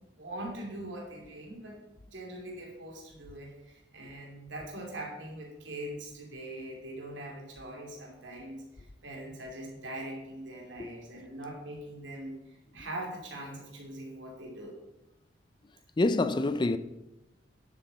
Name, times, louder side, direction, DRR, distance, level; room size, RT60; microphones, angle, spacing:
voice 1, 0.1-1.8 2.1-12.4 12.7-14.8 16.1-16.3, right 1 dB, 80° right, 2.7 m, -42 dB
voice 2, 16.0-16.8, left 2 dB, 25° left, 0.4 m, -26 dB
10.0 x 8.0 x 4.1 m
head